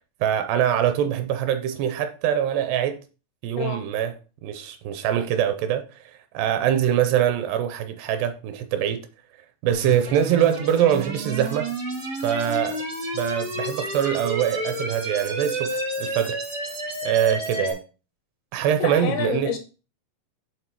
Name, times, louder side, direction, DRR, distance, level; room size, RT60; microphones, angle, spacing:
voice 1, 0.2-3.0 3.4-9.1 9.6-11.7 12.2-12.8 13.1-16.4 17.0-17.8 18.5-19.6, right 10 dB, 80° right, 2.6 m, -24 dB
sound 1, 9.7-17.7, right 1 dB, 60° right, 0.9 m, -30 dB
voice 2, 18.8-19.6, left 8 dB, 80° left, 2.5 m, -28 dB
8.8 x 3.5 x 4.5 m
omnidirectional pair, 5.1 m